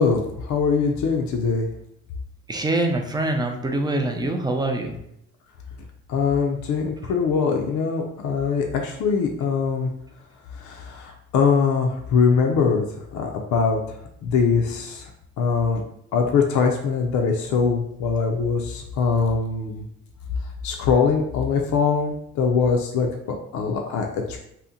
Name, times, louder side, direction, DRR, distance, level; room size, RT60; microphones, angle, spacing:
voice 1, 0.0-1.7 6.1-9.9 10.6-12.8 13.1-13.8 14.2-15.0 15.4-15.8 16.1-19.8 20.6-24.4, left 5 dB, 65° left, 2 dB, 0.5 m, -22 dB
voice 2, 2.5-5.0, right 2 dB, 15° right, 4 dB, 0.3 m, -24 dB
2.8 x 2.1 x 3.7 m, 0.73 s
cardioid pair, 120°, 33 cm